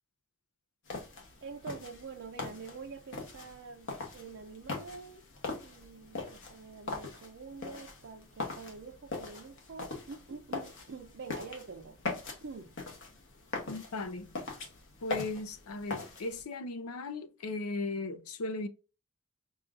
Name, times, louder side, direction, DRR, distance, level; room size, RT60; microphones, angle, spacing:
sound 1, 0.9-16.4, left 3 dB, 60° left, 1.2 m, -41 dB
voice 1, 1.4-5.2 5.6-12.0 12.4-12.8, right 4 dB, 55° right, 0.5 m, -46 dB
voice 2, 13.7-14.3 15.0-18.7, left 3 dB, 80° left, 0.6 m, -37 dB
5.4 x 2.4 x 2.5 m
head